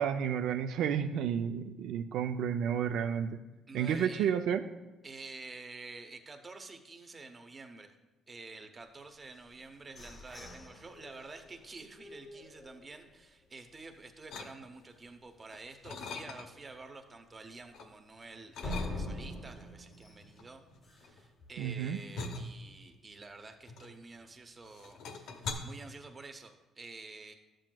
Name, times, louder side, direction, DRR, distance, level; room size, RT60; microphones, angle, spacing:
voice 1, 0.0-3.4 3.7-4.6 21.6-22.0, right 8 dB, 75° right, 7 dB, 0.3 m, -31 dB
voice 2, 3.7-4.3 5.0-8.0 8.3-20.6 20.9-27.3, right 3 dB, 20° right, 5 dB, 0.6 m, -49 dB
sound 1, 9.3-13.2 13.7-13.8 14.2-14.6 14.9-15.0 15.5-15.6 18.6-21.3, left 1 dB, 25° left, 0.7 m, -44 dB
sound 2, 14.3-15.0 15.4-16.7 17.1-17.9 18.5-19.4 20.2-24.3 24.6-25.5, left 4 dB, 70° left, 0.8 m, -43 dB
11.5 x 7.6 x 2.2 m, 1.1 s
cardioid pair, 160°, 0 cm